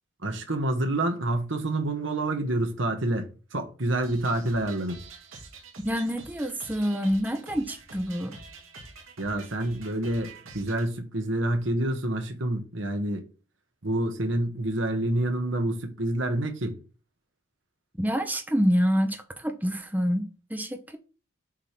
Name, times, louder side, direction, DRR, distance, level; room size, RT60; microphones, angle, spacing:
voice 1, 0.2-5.0 9.2-13.3 13.8-16.8, right 1 dB, 70° right, 1.6 m, -28 dB
sound 1, 4.0-10.9, right 3 dB, 90° right, 2.2 m, -47 dB
voice 2, 5.8-8.4 18.0-21.0, equal, 10° right, 0.7 m, -27 dB
7.4 x 3.6 x 5.9 m
head